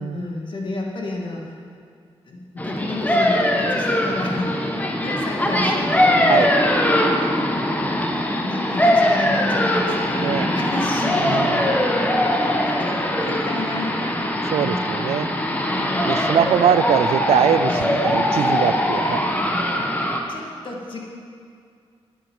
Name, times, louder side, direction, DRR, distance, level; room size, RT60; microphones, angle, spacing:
voice 1, 0.0-1.6 2.3-6.5 7.1-8.0 8.4-11.7 12.4-14.3 14.6-15.0 15.7-16.3 17.9-19.4 20.3-21.0, left 2 dB, 55° left, -1 dB, 2.4 m, -31 dB
sound 1, 2.6-20.2, left 1 dB, 15° left, 1.4 m, -21 dB
voice 2, 11.2-11.7 14.5-15.3 16.0-19.2 19.8-19.9, right 9 dB, 85° right, 13 dB, 0.5 m, -22 dB
10.0 x 8.5 x 7.7 m, 2.3 s
cardioid pair, 80°, 10 cm